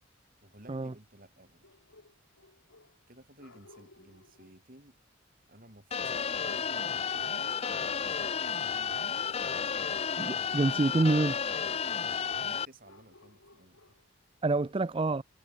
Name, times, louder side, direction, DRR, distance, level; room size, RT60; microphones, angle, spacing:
voice 1, 0.4-1.6 3.1-5.0 5.5-7.5 8.0-9.2 12.4-13.9, right 1 dB, 45° right, 6.6 m, -55 dB
sound 1, 1.6-3.1 3.4-4.6 6.4-8.4 8.7-9.0 9.6-10.0 12.8-14.1, left 2 dB, 80° left, 4.7 m, -60 dB
sound 2, 5.9-12.7, left 7 dB, 30° left, 0.5 m, -32 dB
voice 2, 10.2-11.4 14.4-15.2, right 2 dB, 25° right, 0.4 m, -27 dB
head